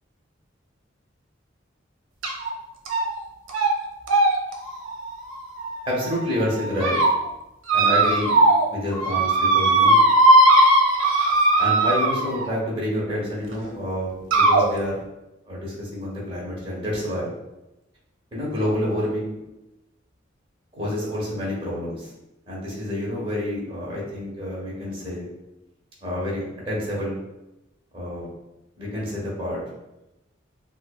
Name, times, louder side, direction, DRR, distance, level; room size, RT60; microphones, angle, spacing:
sound 1, 2.2-2.5 2.9-3.2 3.5-3.7 4.1-6.0 6.5-7.1 7.7-8.7 8.9-12.5 13.5-13.6 14.3-14.6, right 2 dB, 80° right, 0.6 m, -18 dB
voice 1, 5.8-7.0 7.7-8.3 8.7-10.0 11.6-15.0 15.5-17.3 18.3-19.4 20.7-22.1 22.5-25.3 26.0-27.2 27.9-28.3 28.8-29.6, left 1 dB, 25° right, -5 dB, 1.2 m, -28 dB
5.5 x 2.1 x 2.3 m, 0.95 s
head